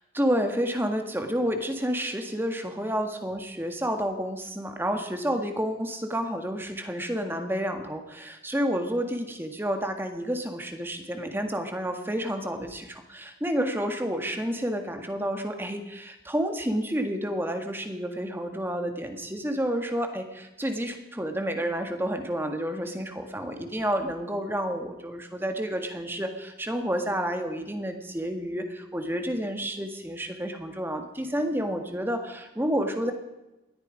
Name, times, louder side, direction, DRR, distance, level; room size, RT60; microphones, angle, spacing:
voice 1, 0.1-33.1, equal, 10° right, 6 dB, 1.7 m, -30 dB
20.5 x 13.5 x 5.1 m, 1.0 s
head